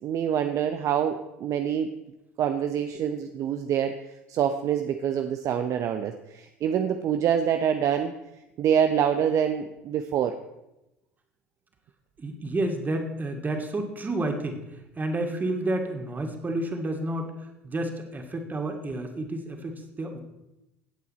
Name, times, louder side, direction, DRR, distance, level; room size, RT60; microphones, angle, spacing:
voice 1, 0.0-1.9 2.4-4.0 4.3-8.1 8.6-10.4, right 8 dB, 50° right, 7 dB, 0.7 m, -26 dB
voice 2, 12.2-14.6 15.0-20.2, right 1 dB, 25° right, 3 dB, 2.3 m, -30 dB
16.5 x 8.3 x 4.3 m, 0.94 s
hypercardioid pair, 65°, 7 cm